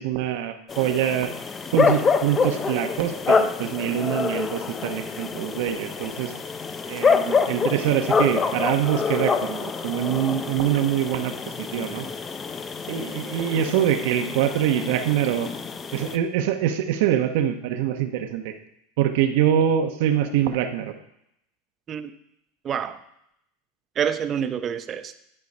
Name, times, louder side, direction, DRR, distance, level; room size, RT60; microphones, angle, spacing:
voice 1, 0.0-1.3 1.7-6.3 6.9-12.1 12.9-15.5 15.9-18.5 19.0-20.9, right 10 dB, 70° right, 7 dB, 0.9 m, -24 dB
sound 1, 0.7-16.2, left 5 dB, 20° left, 0.5 m, -26 dB
voice 2, 22.6-23.0 24.0-25.1, right 8 dB, 30° right, 10 dB, 0.6 m, -27 dB
11.0 x 4.7 x 5.4 m, 0.77 s
supercardioid pair, 140°, 0 cm